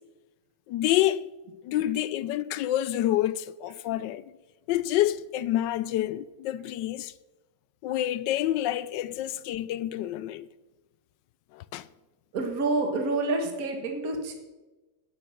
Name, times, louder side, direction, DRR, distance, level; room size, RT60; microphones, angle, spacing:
voice 1, 0.7-1.3 1.6-4.3 4.7-7.1 7.8-10.5 11.5-11.9, left 13 dB, 75° left, 1.1 m, -28 dB
voice 2, 12.3-14.3, right 2 dB, 45° right, 2.1 m, -28 dB
11.5 x 10.0 x 6.5 m
omnidirectional pair, 2.1 m